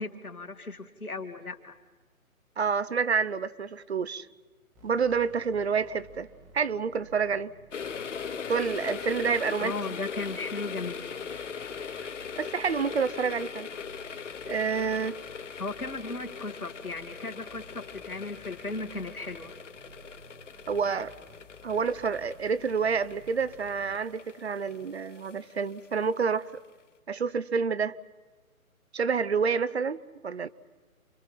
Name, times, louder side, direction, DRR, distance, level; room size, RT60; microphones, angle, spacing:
voice 1, 0.0-1.8 9.6-11.0 15.6-19.5, left 3 dB, 80° left, 4 dB, 2.7 m, -36 dB
voice 2, 2.6-4.3 4.8-6.3 6.5-7.5 8.5-9.7 12.0-12.1 12.4-13.7 14.5-15.2 20.7-21.1 21.6-26.5 27.1-28.0 28.9-30.5, right 5 dB, 50° right, 16 dB, 0.8 m, -28 dB
sound 1, 4.7-24.0, right 1 dB, 5° right, 1.1 m, -54 dB
sound 2, 7.7-26.4 26.6-26.7, left 6 dB, 55° left, 1.0 m, -40 dB
29.0 x 24.5 x 5.7 m, 1.3 s
figure-of-eight pair, 140°, 43 cm